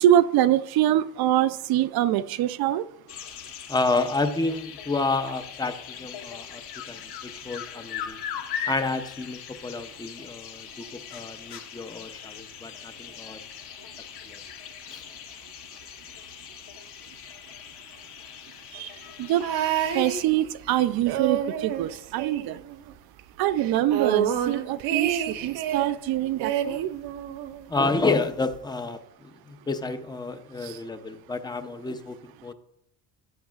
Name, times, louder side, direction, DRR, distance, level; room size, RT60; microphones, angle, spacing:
voice 1, 0.0-2.8 18.7-18.9 19.2-19.4 19.9-22.6 23.4-26.9, right 12 dB, 60° right, 0.5 m, -24 dB
sound 1, 3.1-20.2, left 8 dB, 70° left, 1.2 m, -40 dB
voice 2, 3.7-6.6 6.9-8.2 8.7-13.4 14.3-14.4 14.9-15.0 27.7-32.5, left 3 dB, 10° left, 0.5 m, -30 dB
sound 2, 19.4-20.7 21.0-22.9 23.2-23.3 23.6-26.0 26.4-27.7 28.5-28.6, right 9 dB, 80° right, 1.0 m, -29 dB
16.5 x 8.1 x 2.4 m
cardioid pair, 140°, 42 cm